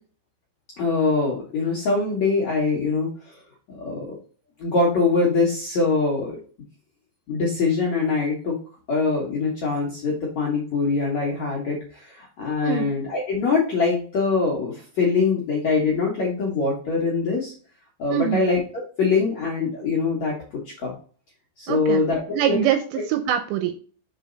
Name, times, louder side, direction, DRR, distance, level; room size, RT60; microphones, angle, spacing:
voice 1, 0.8-3.4 3.7-4.2 4.6-6.4 7.3-8.6 8.9-17.5 18.0-18.6 19.0-20.3 20.8-20.9 21.6-22.6, left 4 dB, 65° left, -4 dB, 1.7 m, -23 dB
voice 2, 18.1-18.5 21.7-22.0 22.3-23.8, right 10 dB, 80° right, 8 dB, 2.6 m, -24 dB
7.0 x 4.5 x 3.9 m, 0.41 s
omnidirectional pair, 5.5 m